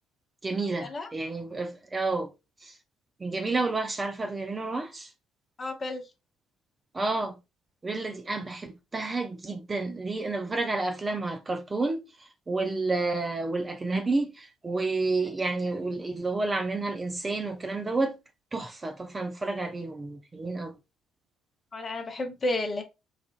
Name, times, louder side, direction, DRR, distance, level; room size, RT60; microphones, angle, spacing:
voice 1, 0.4-2.3 2.6-2.7 3.2-5.1 6.9-7.4 7.8-18.2 18.5-20.7, right 3 dB, 25° right, 0.5 m, -30 dB
voice 2, 5.6-6.0 21.7-22.8, left 2 dB, 35° left, 0.8 m, -31 dB
4.1 x 2.4 x 2.4 m
hypercardioid pair, 50°, 0 cm